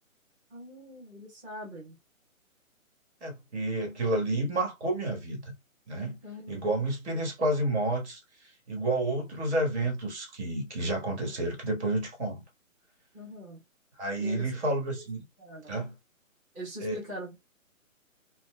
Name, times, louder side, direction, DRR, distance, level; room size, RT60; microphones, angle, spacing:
voice 1, 0.5-2.0 6.2-6.7 13.1-13.6 14.2-14.5 15.4-15.8 16.5-17.4, equal, 10° right, 0.9 m, -42 dB
voice 2, 3.2-5.5 5.9-6.2 6.5-8.2 8.7-12.4 14.0-15.2 15.7-15.9 16.8-17.0, right 1 dB, 55° right, 1.6 m, -30 dB
4.1 x 2.2 x 2.2 m
hypercardioid pair, 155°, 41 cm